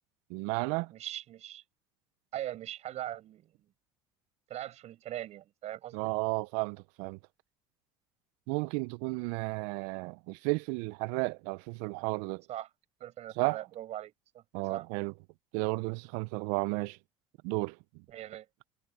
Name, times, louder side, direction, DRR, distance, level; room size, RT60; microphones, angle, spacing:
voice 1, 0.3-0.9 5.9-7.2 8.5-12.4 13.4-13.6 14.5-15.1 15.5-17.0 17.4-17.8, right 28 dB, 75° right, 0.5 m, -33 dB
voice 2, 0.9-1.6 2.3-3.7 4.5-6.1 12.5-12.7 13.0-14.4 14.7-14.9 18.1-18.5, right 12 dB, 55° right, 7.7 m, -41 dB
supercardioid pair, 90°, 13 cm